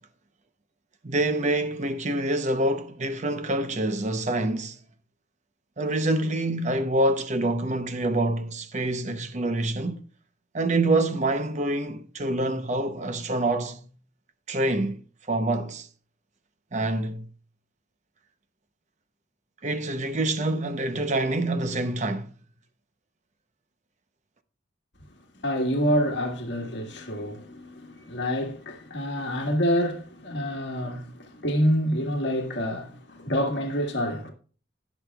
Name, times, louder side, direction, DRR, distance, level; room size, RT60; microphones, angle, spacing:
voice 1, 1.0-4.8 5.8-10.0 10.5-13.8 14.5-15.0 15.3-15.9 16.7-17.3 19.6-22.3, right 2 dB, 40° right, 0.8 m, -26 dB
voice 2, 25.4-34.3, equal, 65° left, 1.7 m, -27 dB
18.0 x 6.3 x 2.3 m
head